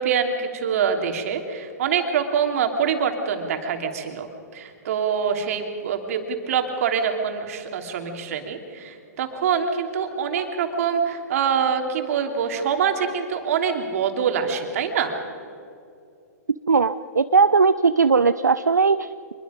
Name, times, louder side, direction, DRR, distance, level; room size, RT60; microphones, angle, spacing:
voice 1, 0.0-15.1, right 7 dB, 60° right, 4 dB, 3.0 m, -25 dB
voice 2, 16.7-19.3, right 5 dB, 90° right, 12 dB, 0.5 m, -19 dB
25.5 x 21.5 x 5.1 m, 2.5 s
hypercardioid pair, 115°, 9 cm